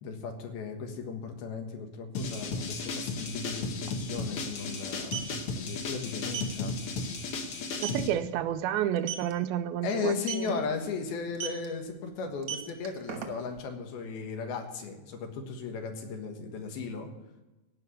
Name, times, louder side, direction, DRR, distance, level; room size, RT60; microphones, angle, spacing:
voice 1, 0.0-5.3 5.6-6.7 7.7-7.8 9.8-17.1, left 5 dB, 80° left, 4 dB, 3.4 m, -36 dB
sound 1, 2.1-8.1, left 3 dB, 65° left, 1.5 m, -35 dB
sound 2, 3.3-3.4 3.6-3.8 4.8-5.3 6.3-6.5 7.0-7.1 7.5-7.6 7.8-8.1 9.0-9.3 10.2-10.5 11.3-11.7 12.3-13.6, right 9 dB, 55° right, 1.8 m, -35 dB
voice 2, 7.8-10.6, right 11 dB, 85° right, 12 dB, 2.5 m, -30 dB
16.5 x 5.8 x 8.4 m, 1.0 s
omnidirectional pair, 4.3 m